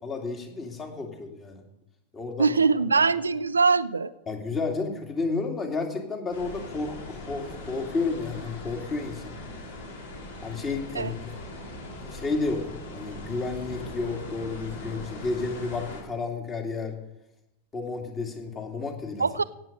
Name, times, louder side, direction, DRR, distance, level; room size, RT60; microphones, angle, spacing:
voice 1, 0.0-1.6 2.1-2.6 4.3-9.4 10.4-11.4 12.1-16.9 17.7-19.3, left 3 dB, 25° left, 3 dB, 2.6 m, -31 dB
voice 2, 2.4-4.1 10.9-11.1 19.2-19.4, right 4 dB, 75° right, 15 dB, 0.4 m, -22 dB
sound 1, 6.3-16.0, left 1 dB, 60° left, 3.3 m, -40 dB
17.0 x 7.7 x 5.4 m, 0.89 s
figure-of-eight pair, 90°, 0 cm